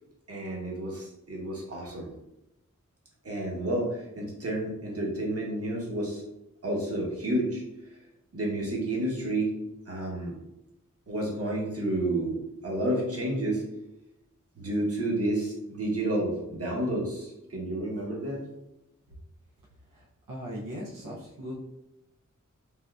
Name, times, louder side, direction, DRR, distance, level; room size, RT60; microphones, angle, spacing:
voice 1, 0.3-2.1 3.2-6.2 6.6-8.0 8.3-9.5 9.9-10.3 11.1-12.4 12.6-13.6 14.5-18.4, right 1 dB, 50° right, -2 dB, 1.0 m, -30 dB
voice 2, 19.9-21.6, equal, 90° right, -4 dB, 0.6 m, -39 dB
3.5 x 2.6 x 2.3 m, 0.89 s
wide cardioid pair, 65°, 31 cm